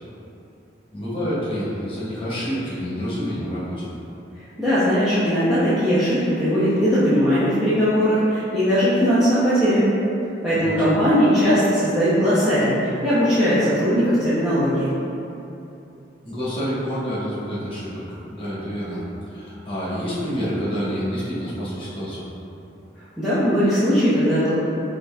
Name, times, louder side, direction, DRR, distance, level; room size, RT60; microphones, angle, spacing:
voice 1, 0.9-3.8 10.5-10.8 16.2-19.0 19.3-22.2, equal, 30° left, -9 dB, 1.1 m, -28 dB
voice 2, 4.6-9.9 10.4-14.9 23.2-24.5, equal, ahead, -16 dB, 0.7 m, -19 dB
5.2 x 2.7 x 2.3 m, 2.9 s
head